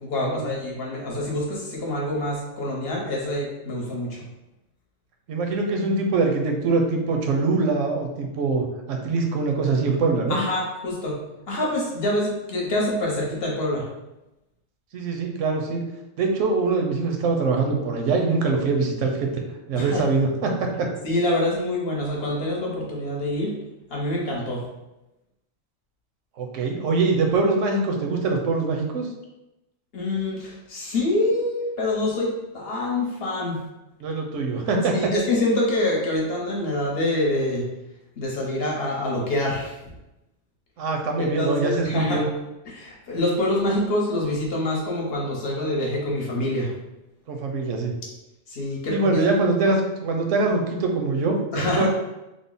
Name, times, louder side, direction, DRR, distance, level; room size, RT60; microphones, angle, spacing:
voice 1, 0.0-4.2 10.3-11.2 11.5-13.9 19.7-20.0 21.0-23.5 23.9-24.6 29.9-33.6 34.9-37.7 38.2-39.9 41.2-42.2 42.7-46.7 48.5-49.3 51.5-51.9, left 1 dB, 55° left, -3 dB, 1.0 m, -26 dB
voice 2, 5.3-10.4 14.9-15.8 16.2-19.3 19.7-20.9 26.4-29.1 34.0-35.0 40.8-42.3 47.3-47.9 48.9-51.9, right 3 dB, 80° right, 2 dB, 1.0 m, -23 dB
3.4 x 2.0 x 3.8 m, 0.97 s
omnidirectional pair, 1.3 m